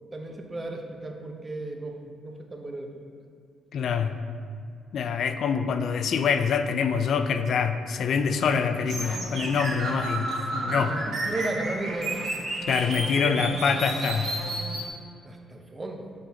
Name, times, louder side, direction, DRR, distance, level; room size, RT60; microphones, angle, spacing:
voice 1, 0.1-3.0 10.7-12.4 13.2-13.5 15.2-16.1, right 2 dB, 25° right, 3 dB, 0.8 m, -35 dB
voice 2, 3.7-4.2 4.9-11.0 12.7-14.3, left 6 dB, 65° left, 8 dB, 0.3 m, -25 dB
sound 1, 8.9-14.9, right 1 dB, 60° right, 1.5 m, -31 dB
6.6 x 4.0 x 4.2 m, 2.2 s
cardioid pair, 90°, 0 cm